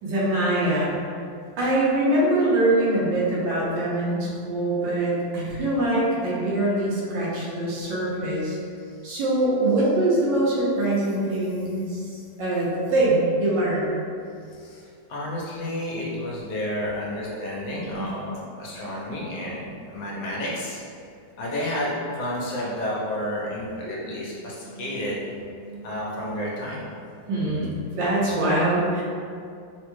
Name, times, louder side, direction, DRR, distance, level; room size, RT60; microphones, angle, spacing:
voice 1, 0.0-1.0 1.6-8.6 9.0-13.9 18.0-18.1 24.6-24.8 25.6-25.9 27.3-29.0, right 1 dB, 80° right, -6 dB, 1.5 m, -23 dB
voice 2, 8.5-8.9 14.5-20.8 21.4-25.3 25.8-26.8, left 1 dB, 85° left, -5 dB, 1.4 m, -31 dB
3.7 x 2.2 x 3.0 m, 2.4 s
omnidirectional pair, 2.0 m